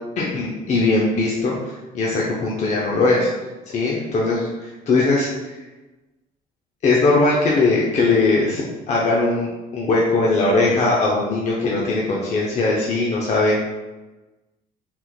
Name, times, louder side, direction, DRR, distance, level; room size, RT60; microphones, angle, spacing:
voice 1, 0.2-1.5 1.9-3.3 3.7-5.6 6.8-13.7, left 3 dB, 40° left, -3 dB, 0.5 m, -20 dB
3.5 x 2.9 x 2.3 m, 1.1 s
cardioid pair, 110°, 17 cm